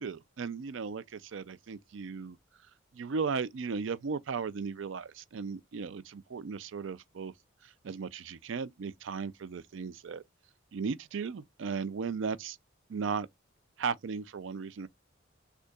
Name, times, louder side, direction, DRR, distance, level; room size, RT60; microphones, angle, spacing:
voice 1, 0.0-2.4 2.9-7.3 7.6-10.2 10.7-12.6 12.9-13.3 13.8-14.9, right 5 dB, 70° right, 0.4 m, -36 dB
6.4 x 2.4 x 2.3 m
head